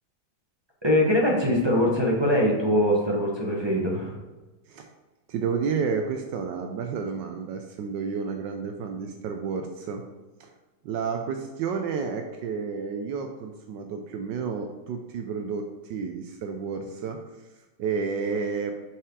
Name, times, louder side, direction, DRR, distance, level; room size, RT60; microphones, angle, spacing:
voice 1, 0.8-4.1, equal, 15° right, -4 dB, 1.1 m, -22 dB
voice 2, 5.3-10.0 10.4-10.5 10.8-17.2 17.8-18.7, right 5 dB, 80° right, 4 dB, 1.3 m, -31 dB
6.0 x 4.9 x 4.7 m, 1.2 s
omnidirectional pair, 1.9 m